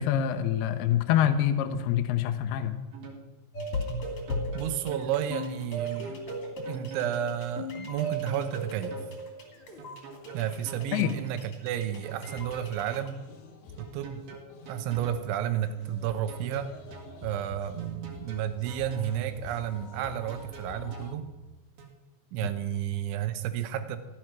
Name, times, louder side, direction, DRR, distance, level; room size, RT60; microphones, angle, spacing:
voice 1, 0.0-2.7 10.9-11.1, left 10 dB, 75° left, 7 dB, 2.4 m, -25 dB
sound 1, 2.9-3.2 4.0-5.1 5.8-7.2 8.0-9.1 9.8-11.2 12.0-13.1 13.8-15.2 16.0-17.1 17.8-19.2 20.0-21.1 21.8-21.9, right 5 dB, 55° right, 3.2 m, -47 dB
sound 2, 3.5-13.1, equal, 35° left, 2.6 m, -36 dB
voice 2, 4.5-6.2 6.7-9.0 10.3-13.2 13.8-14.2 14.7-16.7 17.2-21.3 22.3-24.0, right 10 dB, 80° right, 10 dB, 3.2 m, -32 dB
sound 3, 7.9-8.0 9.5-9.8 10.1-10.2 11.9-21.1, left 4 dB, 60° left, 2.4 m, -48 dB
16.0 x 12.0 x 6.2 m, 1.1 s
omnidirectional pair, 5.8 m